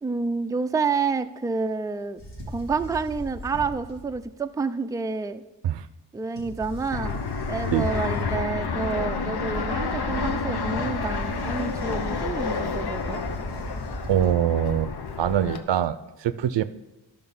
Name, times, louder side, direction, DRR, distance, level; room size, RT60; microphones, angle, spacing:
voice 1, 0.0-2.2 2.5-5.4 6.1-7.2 7.5-13.2, right 4 dB, 10° right, 9 dB, 0.4 m, -29 dB
sound 1, 2.2-4.3 6.4-8.6 10.7-14.4, equal, 80° left, 3.2 m, -38 dB
Fixed-wing aircraft airplane, 6.9-15.6, left 4 dB, 60° left, 0.9 m, -29 dB
voice 2, 14.1-14.9 15.2-16.6, right 10 dB, 75° right, 13 dB, 0.6 m, -23 dB
11.0 x 5.1 x 5.6 m, 1.0 s
cardioid pair, 50°, 44 cm